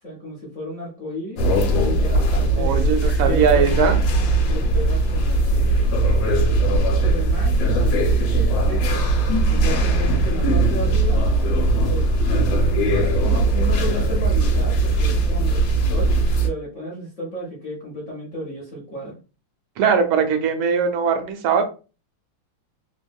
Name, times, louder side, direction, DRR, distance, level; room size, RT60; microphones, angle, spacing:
voice 1, 0.0-1.4 1.8-4.0 4.4-6.0 7.0-9.0 9.5-11.2 11.9-12.1 12.7-16.1 16.4-19.2, equal, 55° left, -3 dB, 0.8 m, -33 dB
sound 1, 1.4-16.5, right 2 dB, 75° left, 1.3 m, -19 dB
voice 2, 2.6-4.0 19.8-21.7, right 6 dB, 85° right, 6 dB, 1.4 m, -20 dB
3.4 x 2.1 x 2.3 m, 0.33 s
omnidirectional pair, 2.2 m